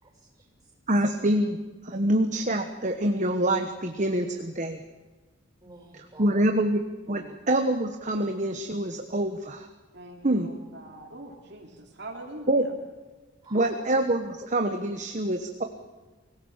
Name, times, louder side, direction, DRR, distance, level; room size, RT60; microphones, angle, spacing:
voice 1, 0.0-0.8 5.6-6.4 13.4-13.9, right 2 dB, 20° right, 1 dB, 6.5 m, -50 dB
voice 2, 0.9-1.6 1.8-4.8 5.9-6.8 7.1-9.7 10.2-10.5 12.5-12.7 13.5-15.6, right 1 dB, 35° right, 6 dB, 1.1 m, -26 dB
voice 3, 7.1-7.4 9.9-12.7 13.5-13.8, right 1 dB, 60° right, 1 dB, 2.9 m, -42 dB
24.5 x 16.5 x 7.3 m, 1.3 s
head